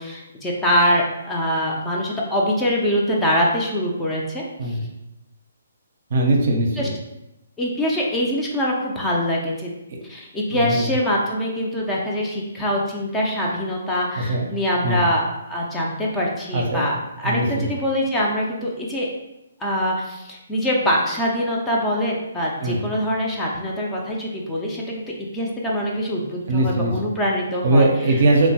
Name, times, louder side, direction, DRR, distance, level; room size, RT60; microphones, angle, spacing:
voice 1, 0.0-4.4 6.8-6.9 7.6-9.7 10.1-19.1 19.6-28.2, equal, 10° left, -3 dB, 0.4 m, -24 dB
voice 2, 6.1-6.9 9.9-10.0 10.5-10.9 14.2-14.5 14.8-15.0 16.5-16.9 17.2-17.6 22.6-22.8 26.5-26.9 27.6-28.5, right 2 dB, 55° right, 1 dB, 0.5 m, -20 dB
2.9 x 2.1 x 2.7 m, 0.91 s
figure-of-eight pair, 140°, 0 cm